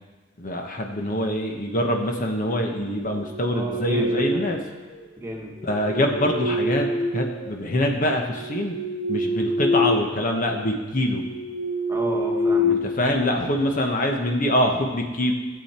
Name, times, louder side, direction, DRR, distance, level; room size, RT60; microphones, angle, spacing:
voice 1, 0.4-4.6 5.6-6.9 7.1-8.8 9.1-11.2 12.7-15.3, left 1 dB, 45° left, 2 dB, 1.1 m, -24 dB
sound 1, 3.1-4.6 5.6-7.7 8.2-10.1 10.4-10.6 11.1-13.5, left 1 dB, 70° left, 1.8 m, -26 dB
voice 2, 3.5-4.4 5.2-5.5 11.9-12.8, equal, 15° right, -1 dB, 1.5 m, -32 dB
15.5 x 7.8 x 4.4 m, 1.3 s
head